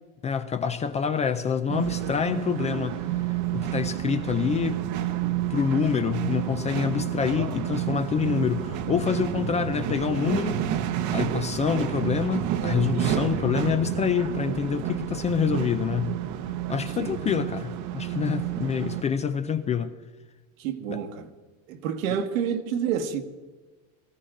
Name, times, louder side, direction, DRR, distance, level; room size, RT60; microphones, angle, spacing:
voice 1, 0.2-3.0 3.3-4.8 5.5-10.6 11.1-16.2 16.7-19.9 20.9-21.0, left 7 dB, 15° left, 0.4 m, -27 dB
sound 1, 1.7-19.0, right 11 dB, 45° right, 1.0 m, -29 dB
voice 2, 20.6-21.3 21.7-23.2, right 8 dB, 75° right, 1.7 m, -29 dB
18.5 x 14.5 x 3.8 m
supercardioid pair, 130°, 41 cm